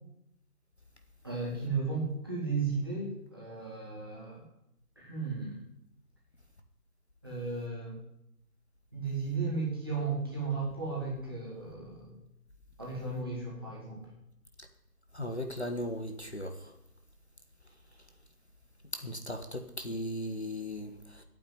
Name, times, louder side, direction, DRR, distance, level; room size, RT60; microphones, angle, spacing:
voice 1, 1.2-4.4 5.0-5.5 7.2-7.9 8.9-12.1 12.8-14.1, right 4 dB, 15° right, -5 dB, 2.1 m, -35 dB
voice 2, 15.1-16.5 18.9-21.2, left 1 dB, 40° left, 6 dB, 1.2 m, -37 dB
9.2 x 8.9 x 9.8 m, 0.83 s
figure-of-eight pair, 175°, 48 cm